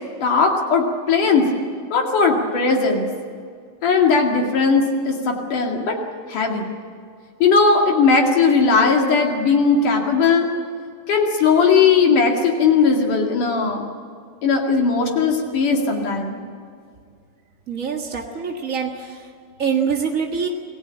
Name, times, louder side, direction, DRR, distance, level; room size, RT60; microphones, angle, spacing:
voice 1, 0.2-1.5 1.9-3.1 3.8-6.0 6.3-6.7 7.4-10.5 11.1-13.8 14.4-16.4, left 5 dB, 65° left, 1 dB, 3.8 m, -18 dB
voice 2, 17.7-19.2 19.6-20.5, right 6 dB, 40° right, 2 dB, 1.1 m, -24 dB
27.5 x 18.5 x 8.8 m, 2.2 s
omnidirectional pair, 4.0 m